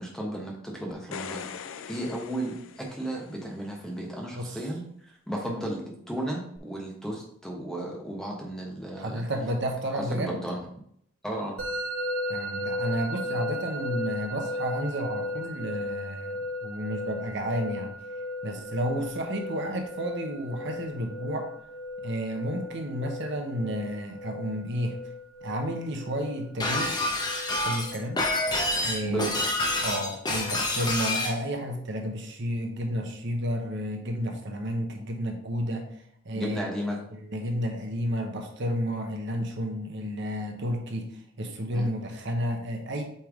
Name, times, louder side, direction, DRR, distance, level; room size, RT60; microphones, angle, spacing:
voice 1, 0.0-1.5 1.9-9.2 9.9-10.6 11.2-11.6 29.0-29.3 36.3-37.0 40.6-40.7 41.7-41.9, right 1 dB, ahead, -1 dB, 1.1 m, -34 dB
sound 1, 0.9-3.5 6.6-6.7, left 7 dB, 65° left, 0.4 m, -41 dB
voice 2, 9.0-10.4 12.3-17.9 18.4-21.5 22.0-25.0 25.4-26.9 27.6-28.2 28.8-29.3 29.8-35.8 36.2-36.6 37.3-41.1 41.4-43.0, equal, 55° right, 3 dB, 0.8 m, -31 dB
Musical instrument, 11.6-30.5, left 1 dB, 70° right, 2.3 m, -36 dB
Shatter, 26.6-31.4, left 2 dB, 20° left, 0.8 m, -28 dB
8.2 x 3.4 x 3.6 m, 0.69 s
head